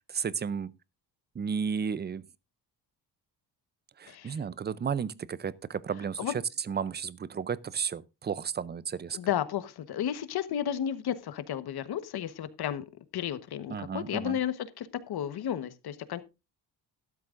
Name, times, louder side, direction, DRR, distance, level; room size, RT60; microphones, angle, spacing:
voice 1, 0.1-0.7 1.4-2.2 4.0-6.2 6.7-9.2 13.7-14.4, right 6 dB, 25° right, 0.5 m, -33 dB
voice 2, 4.1-4.4 6.2-6.3 9.1-12.8 13.1-16.2, left 10 dB, 65° left, 1.2 m, -33 dB
13.5 x 12.5 x 2.5 m
cardioid pair, 120°, 41 cm